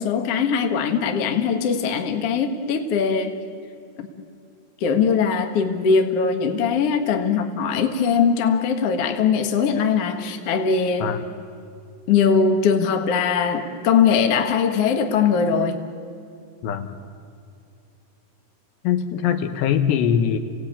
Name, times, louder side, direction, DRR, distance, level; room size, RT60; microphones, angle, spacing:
voice 1, 0.0-3.4 4.0-4.1 4.8-11.2 12.1-15.8, left 6 dB, 60° left, 5 dB, 1.7 m, -21 dB
voice 2, 16.6-16.9 18.8-20.4, left 8 dB, 90° left, 7 dB, 3.5 m, -22 dB
29.0 x 18.0 x 8.8 m, 2.4 s
omnidirectional pair, 4.9 m